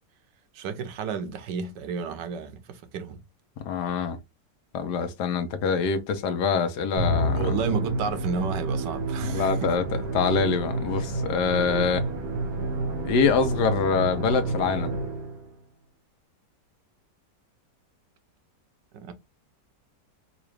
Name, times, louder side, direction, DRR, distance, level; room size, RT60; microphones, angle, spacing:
voice 1, 0.5-3.2 7.4-9.7 18.9-19.1, right 6 dB, 90° right, 1.3 m, -32 dB
voice 2, 3.6-4.2 4.7-7.5 9.2-9.8 10.1-12.1 13.0-14.9, left 5 dB, 75° left, 1.3 m, -25 dB
Musical instrument, 7.0-15.5, right 1 dB, 70° right, 1.6 m, -29 dB
3.9 x 2.4 x 3.1 m
omnidirectional pair, 1.8 m